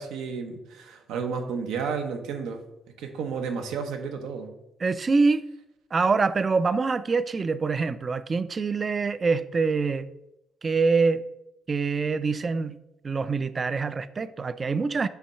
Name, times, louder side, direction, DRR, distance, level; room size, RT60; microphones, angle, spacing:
voice 1, 0.0-2.6 3.0-4.5, right 5 dB, 90° right, 0.8 m, -32 dB
voice 2, 4.8-5.5 5.9-10.1 10.6-11.3 11.7-12.8 13.0-15.1, right 4 dB, 35° right, 0.3 m, -25 dB
5.7 x 3.1 x 5.6 m
cardioid pair, 90°, 0 cm